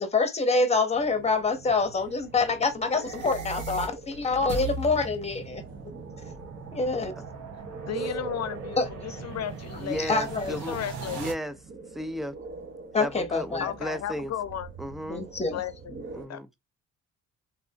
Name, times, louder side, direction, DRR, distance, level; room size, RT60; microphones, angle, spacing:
voice 1, 0.0-5.6 6.7-7.1 8.8-9.2 10.0-10.6 12.9-13.7 15.1-15.6, left 3 dB, 20° left, 0.8 m, -26 dB
sound 1, 0.9-16.3, right 3 dB, 40° right, 0.9 m, -44 dB
sound 2, 2.8-11.3, right 3 dB, 85° right, 1.2 m, -39 dB
voice 2, 7.9-10.1 10.5-11.3 13.6-14.7 15.5-16.0 16.3-16.4, left 10 dB, 60° left, 0.6 m, -34 dB
voice 3, 9.8-10.8 11.1-11.6 11.9-12.4 13.0-14.3 14.8-15.3 16.1-16.5, equal, ahead, 0.3 m, -34 dB
3.3 x 2.6 x 2.7 m
cardioid pair, 90°, 30 cm